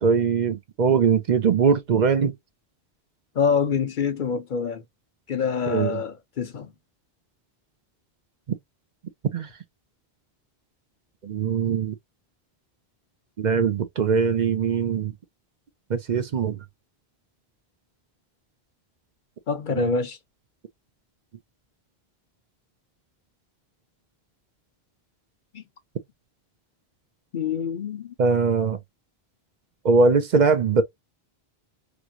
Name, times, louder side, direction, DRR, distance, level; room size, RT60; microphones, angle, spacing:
voice 1, 0.0-2.3 5.7-6.0 8.5-8.6 9.3-9.5 11.2-11.9 13.4-15.1 15.9-16.6 19.7-20.0 28.2-28.8 29.8-30.8, right 5 dB, 50° right, 0.6 m, -21 dB
voice 2, 3.4-4.8 5.3-6.7 19.5-20.2 25.5-25.6 27.3-28.1, left 6 dB, 55° left, 0.7 m, -26 dB
3.1 x 2.4 x 2.7 m
omnidirectional pair, 1.1 m